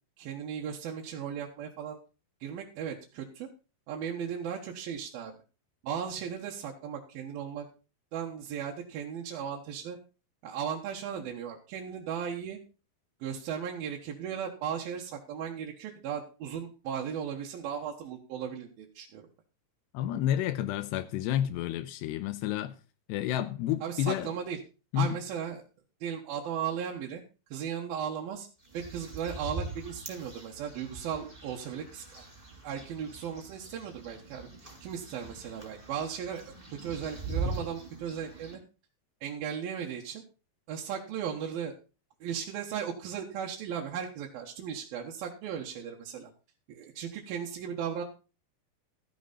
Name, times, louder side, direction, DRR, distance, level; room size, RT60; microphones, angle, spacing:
voice 1, 0.2-2.0 2.4-3.5 3.9-5.3 5.8-7.7 8.1-10.0 10.4-12.6 13.2-19.2 23.8-24.6 25.0-25.6 26.0-27.2 27.5-28.5 28.7-32.2 32.6-34.5 34.8-38.6 39.2-40.2 40.7-41.7 42.2-46.3 46.7-48.0, right 8 dB, 65° right, 3.0 m, -36 dB
voice 2, 19.9-22.7 23.1-24.3 24.9-25.1, left 11 dB, 85° left, 2.9 m, -30 dB
sound 1, 28.6-38.6, right 3 dB, 10° right, 4.3 m, -41 dB
14.0 x 10.0 x 4.2 m
omnidirectional pair, 4.8 m